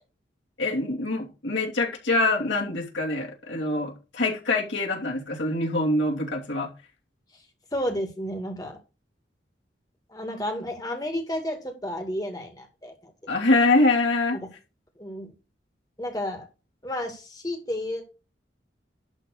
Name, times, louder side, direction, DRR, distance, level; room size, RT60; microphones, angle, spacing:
voice 1, 0.6-6.7 13.3-14.4, left 2 dB, 90° left, 2.9 m, -24 dB
voice 2, 7.7-8.8 10.1-13.1 14.3-14.5 15.0-15.3 16.0-16.5 16.8-18.0, left 1 dB, 20° left, 2.3 m, -31 dB
11.5 x 4.0 x 6.7 m
head